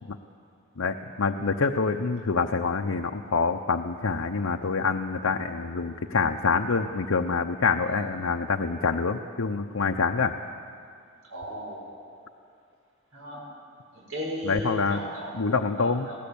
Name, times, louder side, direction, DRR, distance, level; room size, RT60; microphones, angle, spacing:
voice 1, 0.8-10.3 14.4-15.0 15.3-16.1, left 4 dB, 90° left, 3 dB, 0.8 m, -26 dB
voice 2, 11.3-12.0 13.1-13.4 14.1-15.4 15.8-16.2, equal, 85° right, -4 dB, 7.0 m, -35 dB
21.0 x 16.5 x 8.7 m, 2.3 s
head